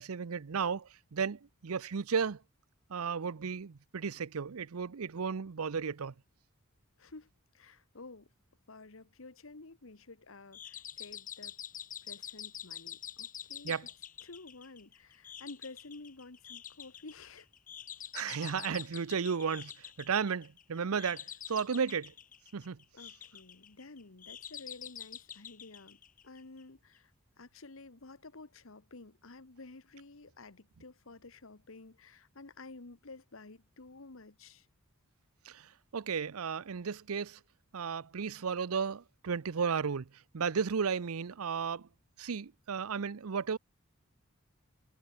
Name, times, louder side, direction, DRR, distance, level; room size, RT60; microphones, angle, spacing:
voice 1, 0.0-2.4 2.9-6.1 13.6-13.9 18.1-22.1 22.5-22.8 35.4-37.4 37.7-40.1 40.3-41.9 42.2-43.6, right 6 dB, 85° right, 0.6 m, -34 dB
voice 2, 7.0-8.3 8.7-11.6 12.0-13.9 14.2-17.5 22.9-27.1 27.4-34.7, left 3 dB, 65° left, 1.3 m, -51 dB
sound 1, 10.5-26.6, left 10 dB, 40° left, 3.4 m, -47 dB
head